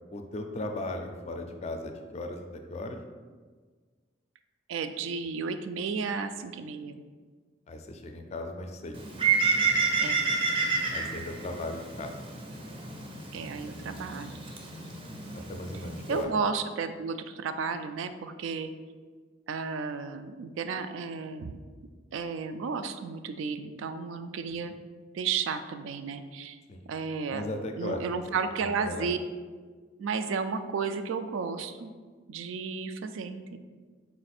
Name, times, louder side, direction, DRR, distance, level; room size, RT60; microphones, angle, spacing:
voice 1, 0.1-3.0 7.7-9.0 10.9-12.1 15.3-16.3 26.7-26.9 27.3-28.0 28.6-29.1, left 2 dB, 35° left, 5 dB, 0.4 m, -37 dB
voice 2, 4.7-7.0 10.0-10.2 13.3-14.5 16.1-18.7 19.5-21.6 22.1-24.7 25.1-26.6 26.9-27.5 27.8-29.2 30.0-31.9 32.3-33.6, right 5 dB, 90° right, 9 dB, 0.3 m, -33 dB
Bird, 8.9-16.2, right 4 dB, 30° right, 0.5 m, -30 dB
4.2 x 2.4 x 4.2 m, 1.5 s
head